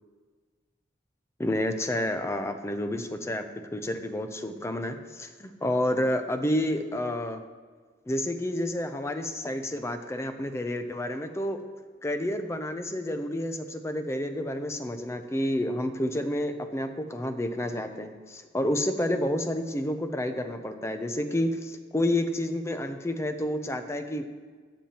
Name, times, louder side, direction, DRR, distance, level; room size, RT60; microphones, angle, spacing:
voice 1, 1.4-3.4 3.7-7.4 8.1-11.6 12.0-24.2, left 1 dB, 15° left, 8 dB, 0.5 m, -29 dB
10.0 x 7.2 x 2.9 m, 1.5 s
head